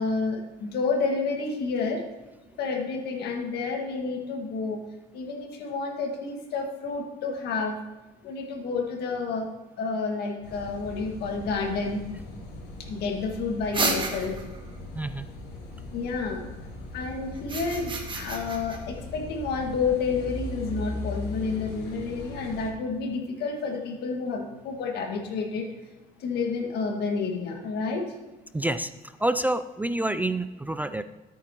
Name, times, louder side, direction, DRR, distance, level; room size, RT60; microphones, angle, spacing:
voice 1, 0.0-2.1 2.6-4.8 5.1-7.8 8.2-9.5 9.8-12.0 12.8-14.4 15.9-16.5 16.9-25.7 26.2-28.1, left 4 dB, 75° left, 3 dB, 1.8 m, -30 dB
Car passing by / Idling / Accelerating revving vroom, 10.4-22.7, left 2 dB, 90° left, 3.0 m, -39 dB
sound 1, 13.7-14.6 17.4-18.8, right 3 dB, 30° right, 1.5 m, -30 dB
voice 2, 14.9-15.3 28.5-28.9 29.2-31.0, right 1 dB, 10° right, 12 dB, 0.3 m, -27 dB
13.5 x 8.5 x 2.9 m, 1.1 s
cardioid pair, 110°, 17 cm